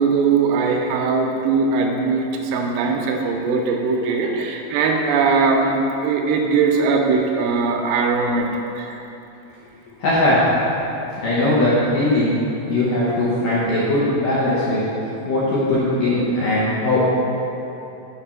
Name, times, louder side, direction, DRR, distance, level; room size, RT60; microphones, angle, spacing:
voice 1, 0.0-8.5 8.8-8.9, right 4 dB, 80° right, 1 dB, 2.7 m, -20 dB
voice 2, 10.0-10.4 11.2-12.3 12.7-14.8 15.3-17.0, left 1 dB, 80° left, -9 dB, 1.8 m, -19 dB
6.7 x 4.8 x 5.8 m, 2.9 s
omnidirectional pair, 5.2 m